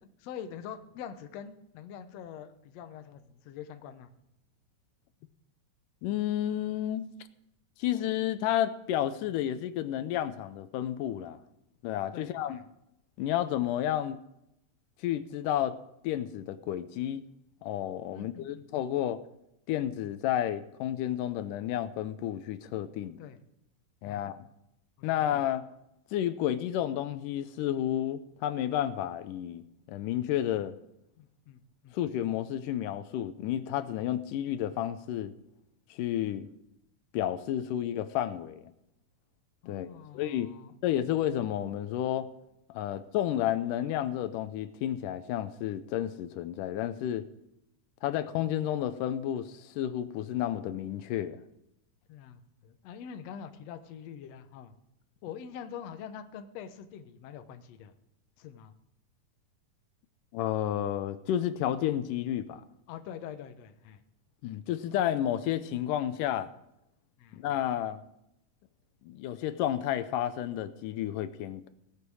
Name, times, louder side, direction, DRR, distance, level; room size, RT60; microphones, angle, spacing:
voice 1, 0.2-4.1 12.1-12.6 18.1-18.7 23.2-23.4 24.1-24.3 31.2-32.0 39.6-40.7 52.1-54.7 55.2-57.9 58.4-58.7 62.9-64.0 67.2-67.4, left 8 dB, 70° left, 8 dB, 1.7 m, -45 dB
voice 2, 6.0-7.0 7.8-11.4 11.8-12.6 13.2-14.2 15.0-15.8 16.0-17.2 17.6-19.2 19.7-23.2 24.0-24.5 25.0-25.6 26.1-29.6 29.9-30.7 31.9-35.3 35.9-36.5 37.1-38.7 39.7-40.5 40.8-42.3 42.7-47.3 48.0-51.4 60.3-62.6 64.4-66.5 67.3-68.0 69.0-71.7, left 11 dB, 85° left, 12 dB, 2.3 m, -31 dB
17.0 x 9.7 x 4.8 m, 0.83 s
omnidirectional pair, 3.7 m